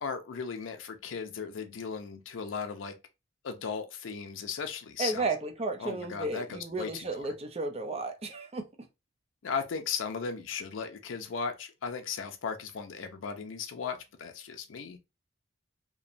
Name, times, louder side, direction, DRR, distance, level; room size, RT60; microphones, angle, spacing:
voice 1, 0.0-3.0 3.4-5.3 5.8-7.3 9.4-15.0, left 6 dB, 85° left, 0.5 m, -36 dB
voice 2, 5.0-8.6, right 3 dB, 35° right, 0.5 m, -33 dB
2.9 x 2.1 x 2.5 m
head